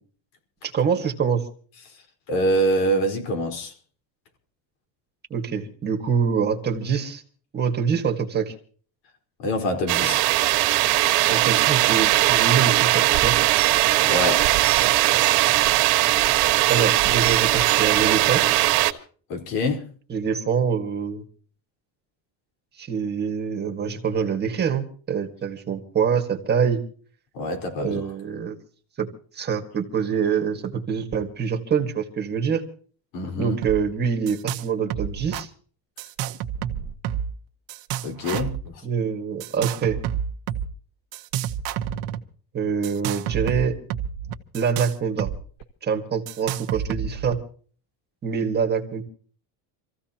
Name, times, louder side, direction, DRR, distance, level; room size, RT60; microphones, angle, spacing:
voice 1, 0.6-1.4 5.3-7.2 7.5-8.5 11.3-13.4 16.7-18.4 20.1-21.2 22.8-26.8 27.8-28.6 29.0-29.1 29.3-32.6 33.4-35.5 38.8-40.0 42.5-43.7 44.5-45.3 45.8-47.4 48.2-49.0, right 6 dB, 25° right, 1.8 m, -25 dB
voice 2, 2.3-3.7 9.4-10.2 14.0-14.5 19.3-19.9 27.3-28.0 33.1-33.6 38.0-38.5, equal, 80° left, 4.7 m, -25 dB
sound 1, 9.9-18.9, right 17 dB, 75° right, 1.7 m, -19 dB
sound 2, 33.6-33.8 34.0-34.6 34.9-35.4 36.0-37.4 37.7-38.6 39.4-40.7 41.1-42.2 42.8-45.4 45.6-45.7 46.3-47.3, right 10 dB, 55° right, 1.2 m, -29 dB
27.0 x 15.5 x 2.9 m
cardioid pair, 175°, 42 cm